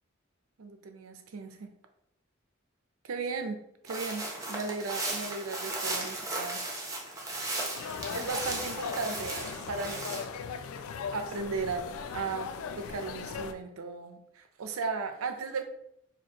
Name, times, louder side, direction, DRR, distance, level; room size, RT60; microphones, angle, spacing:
voice 1, 0.6-1.7 3.0-3.6 3.8-6.6 8.1-10.2 11.1-11.8 12.1-15.6, right 4 dB, 80° right, 6 dB, 0.5 m, -36 dB
sound 1, 3.9-10.2, right 2 dB, 15° right, 0.7 m, -36 dB
sound 2, 7.7-13.5, left 6 dB, 75° left, 0.3 m, -39 dB
4.2 x 2.6 x 2.8 m, 0.77 s
head